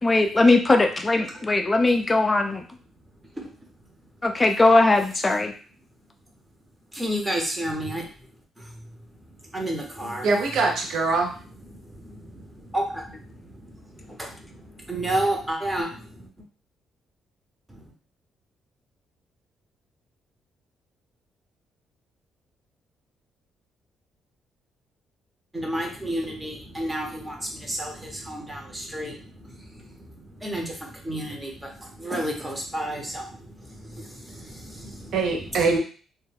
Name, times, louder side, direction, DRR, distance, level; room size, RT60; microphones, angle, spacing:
voice 1, 0.0-2.6 4.2-5.5, left 2 dB, 25° left, 4 dB, 0.3 m, -19 dB
voice 2, 6.9-8.3 8.6-10.3 11.7-16.3 17.7-17.8 25.5-35.8, right 1 dB, 15° right, 0 dB, 0.8 m, -32 dB
voice 3, 10.2-11.3 35.1-35.8, right 4 dB, 70° right, 2 dB, 0.5 m, -23 dB
2.2 x 2.1 x 3.2 m, 0.40 s
cardioid pair, 90°, 0 cm